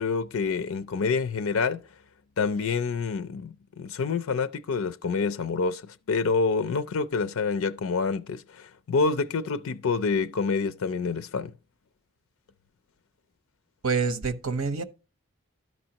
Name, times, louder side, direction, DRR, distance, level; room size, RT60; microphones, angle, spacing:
voice 1, 0.0-1.8 2.4-5.8 6.1-11.5, left 4 dB, 75° left, 0.5 m, -27 dB
voice 2, 13.8-14.8, right 4 dB, 80° right, 0.9 m, -27 dB
12.5 x 5.3 x 2.9 m
head